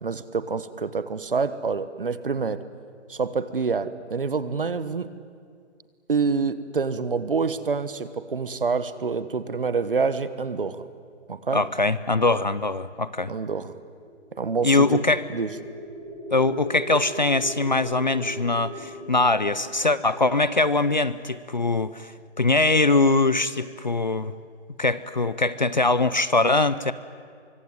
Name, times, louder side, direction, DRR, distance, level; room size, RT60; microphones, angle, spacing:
voice 1, 0.0-2.6 3.1-5.1 6.1-10.9 11.3-11.6 13.3-13.8 14.4-15.0 15.3-15.5, right 5 dB, 50° right, 14 dB, 1.3 m, -27 dB
voice 2, 11.5-13.3 14.6-15.2 16.3-22.1 22.4-24.3 24.8-26.9, left 3 dB, 40° left, 16 dB, 0.6 m, -22 dB
Artillery Drone Burnt Umber, 14.0-22.1, right 1 dB, 5° left, 2.2 m, -40 dB
24.0 x 23.5 x 9.6 m, 2.1 s
hypercardioid pair, 180°, 36 cm